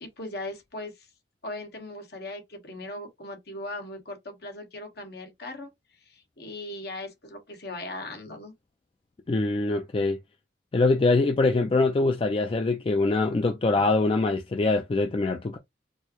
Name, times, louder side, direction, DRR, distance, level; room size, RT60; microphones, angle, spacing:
voice 1, 0.0-0.9 1.4-5.7 6.0-8.5, left 2 dB, 60° left, 1.3 m, -38 dB
voice 2, 9.3-10.2 10.7-15.6, left 3 dB, 30° left, 0.3 m, -23 dB
4.5 x 2.1 x 2.9 m
head